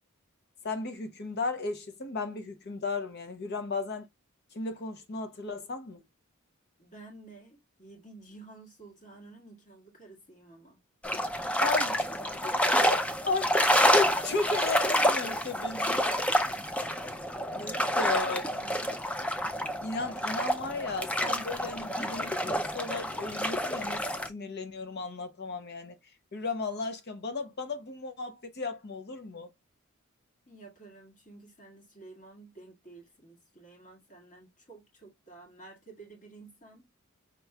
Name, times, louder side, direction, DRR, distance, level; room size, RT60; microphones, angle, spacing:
voice 1, 0.6-4.1 4.5-6.0 11.6-12.1 12.4-16.0 17.5-18.5 19.8-25.9 26.3-29.5, left 3 dB, 55° left, 0.7 m, -35 dB
voice 2, 6.8-10.8 17.2-17.3 17.9-19.1 30.5-36.9, right 3 dB, 35° left, 1.7 m, -52 dB
sound 1, 11.0-24.3, equal, 5° left, 0.4 m, -28 dB
5.2 x 3.0 x 2.2 m
head